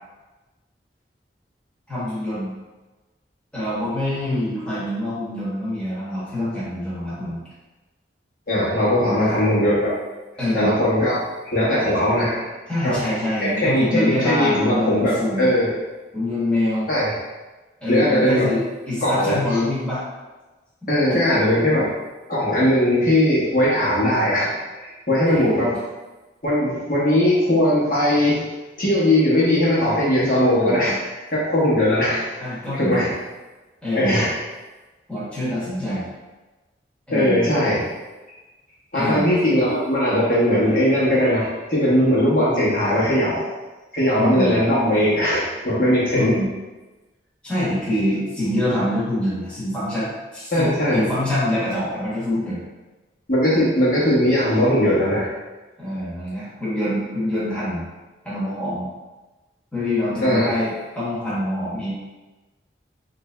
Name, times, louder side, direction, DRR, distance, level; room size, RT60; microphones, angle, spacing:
voice 1, 1.9-2.5 3.5-7.4 9.1-9.3 10.4-10.7 12.7-15.5 16.1-16.9 17.8-20.0 21.1-21.4 25.3-25.8 30.6-31.0 32.4-33.1 33.8-34.2 35.1-36.0 37.1-37.5 38.9-39.3 44.2-44.6 46.1-46.5 47.4-52.6 55.8-57.8 58.2-58.9 59.7-61.9, left 1 dB, 5° left, -11 dB, 1.0 m, -25 dB
voice 2, 8.5-9.9 10.5-11.2 11.4-12.5 12.8-13.0 13.4-15.7 16.9-17.1 17.9-18.5 19.0-19.4 20.9-21.9 22.3-25.7 26.4-28.4 28.8-32.2 32.7-33.1 33.9-34.4 37.1-37.8 38.9-43.4 43.9-46.4 50.5-51.1 53.3-55.3 60.2-60.5, left 1 dB, 50° left, -8 dB, 1.1 m, -19 dB
3.3 x 2.6 x 3.3 m, 1.2 s
head